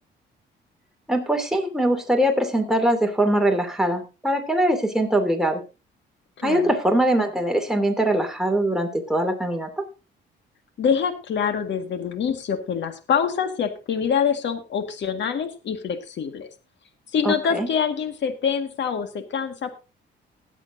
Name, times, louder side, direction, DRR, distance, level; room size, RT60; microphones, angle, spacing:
voice 1, 1.1-5.6 6.4-9.8 17.2-17.7, right 1 dB, ahead, 3 dB, 2.7 m, -22 dB
voice 2, 6.4-6.7 10.8-16.5 17.1-19.7, left 7 dB, 65° left, 8 dB, 1.9 m, -25 dB
20.0 x 8.2 x 2.7 m, 0.30 s
cardioid pair, 90°, 20 cm